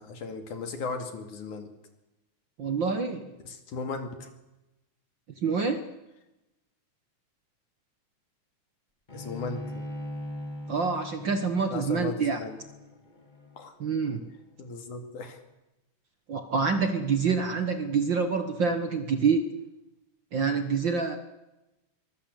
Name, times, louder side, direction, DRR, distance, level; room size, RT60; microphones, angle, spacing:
voice 1, 0.0-1.7 3.5-4.3 9.1-9.8 11.7-12.6 13.6-13.7 14.6-15.4, left 4 dB, 75° left, 6 dB, 3.9 m, -36 dB
voice 2, 2.6-3.3 5.4-5.8 10.7-12.4 13.8-14.3 16.3-19.5 20.3-21.2, right 5 dB, 50° right, 8 dB, 1.5 m, -26 dB
Bowed string instrument, 9.1-14.4, left 1 dB, 15° left, 2.7 m, -41 dB
24.0 x 20.5 x 8.3 m, 0.97 s
omnidirectional pair, 3.5 m